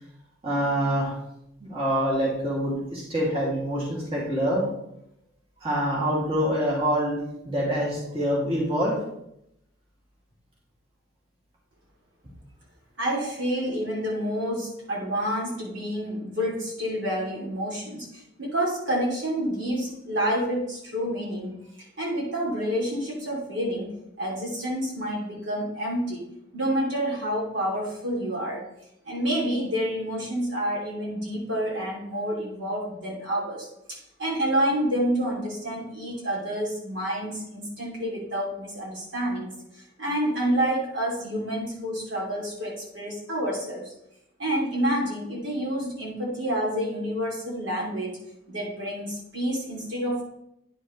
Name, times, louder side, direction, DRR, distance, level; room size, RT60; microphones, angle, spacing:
voice 1, 0.4-1.1 1.6-4.6 5.6-7.2 7.4-9.0, equal, 30° right, -5 dB, 2.4 m, -25 dB
voice 2, 13.0-21.5 22.0-23.9 24.2-26.2 26.5-28.6 29.0-33.7 34.2-43.9 44.4-48.2 48.5-50.2, equal, 65° right, -3 dB, 2.7 m, -28 dB
10.0 x 6.3 x 3.1 m, 0.79 s
head